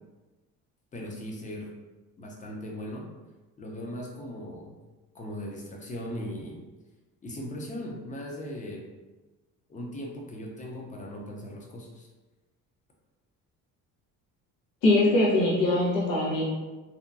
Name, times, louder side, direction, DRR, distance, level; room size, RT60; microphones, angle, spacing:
voice 1, 0.9-1.7 2.2-3.1 3.6-4.8 5.1-6.6 7.2-8.8 9.7-12.1, equal, 25° left, -1 dB, 0.6 m, -38 dB
voice 2, 14.8-16.4, left 2 dB, 80° left, -5 dB, 1.0 m, -22 dB
2.8 x 2.2 x 2.5 m, 1.2 s
cardioid pair, 100°, 33 cm